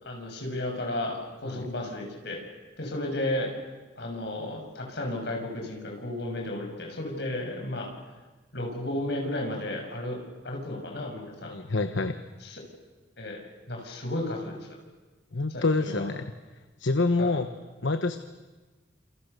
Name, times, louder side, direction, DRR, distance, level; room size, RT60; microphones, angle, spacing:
voice 1, 0.0-2.4 2.8-3.5 4.0-7.9 8.5-11.6 12.4-12.6 13.2-14.6 15.5-16.0 17.2-17.4, left 1 dB, 65° left, 1 dB, 6.6 m, -33 dB
voice 2, 11.4-12.2 15.3-16.3 16.8-17.5 17.8-18.2, left 3 dB, 80° left, 9 dB, 1.1 m, -27 dB
29.5 x 28.0 x 6.8 m, 1.2 s
head